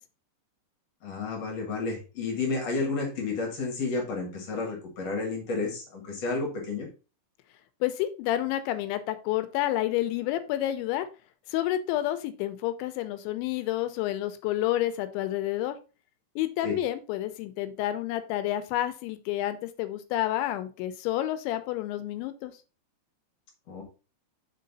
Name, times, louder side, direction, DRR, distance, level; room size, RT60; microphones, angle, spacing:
voice 1, 1.0-6.9 16.6-16.8 23.7-23.8, left 3 dB, 60° left, 1 dB, 1.6 m, -31 dB
voice 2, 7.8-11.1 11.5-15.8 16.4-22.5, left 14 dB, 80° left, 11 dB, 2.8 m, -29 dB
6.6 x 4.5 x 4.0 m, 0.33 s
omnidirectional pair, 5.5 m